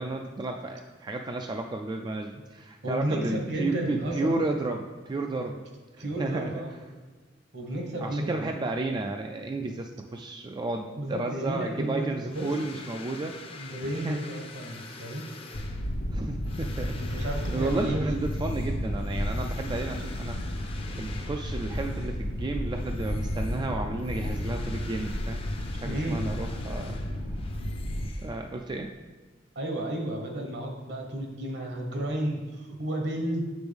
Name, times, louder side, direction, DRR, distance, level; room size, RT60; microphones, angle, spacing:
voice 1, 0.0-5.6 6.0-6.5 8.0-14.2 16.1-20.7 20.9-25.4 25.7-27.0 28.2-28.9, right 2 dB, 25° right, 4 dB, 0.3 m, -33 dB
voice 2, 2.8-4.3 5.3-5.5 6.0-6.7 7.5-8.5 11.0-12.5 13.6-15.3 17.0-18.0 25.8-26.2 29.5-33.4, right 1 dB, 65° right, 2 dB, 1.2 m, -32 dB
sound 1, 12.3-22.3 22.7-28.7, left 3 dB, 30° left, 0.6 m, -47 dB
sound 2, 15.5-28.1, equal, 70° left, 0.7 m, -32 dB
7.8 x 6.1 x 3.5 m, 1.3 s
head